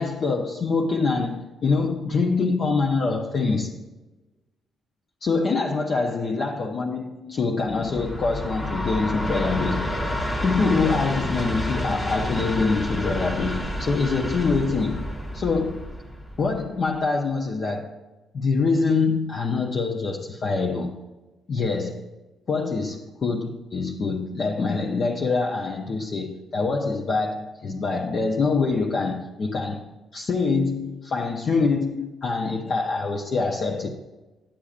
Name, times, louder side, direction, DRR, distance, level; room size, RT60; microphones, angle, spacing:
voice 1, 0.0-3.7 5.2-10.0 10.4-15.1 15.3-15.9 16.4-17.9 18.3-20.9 21.5-22.1 22.5-33.9, left 4 dB, 50° left, 0.7 m, -25 dB
Train, 7.7-16.9, left 1 dB, 30° left, 1.4 m, -29 dB
9.9 x 8.7 x 2.5 m
cardioid pair, 90°, 0 cm